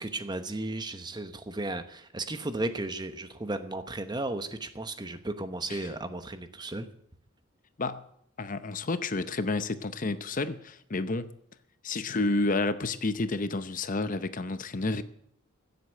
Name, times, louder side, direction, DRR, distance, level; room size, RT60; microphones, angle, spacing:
voice 1, 0.0-6.9, right 2 dB, 20° right, 10 dB, 1.0 m, -34 dB
voice 2, 8.4-11.3 11.8-15.0, left 3 dB, 40° left, 12 dB, 0.7 m, -30 dB
16.0 x 8.1 x 8.6 m, 0.70 s
head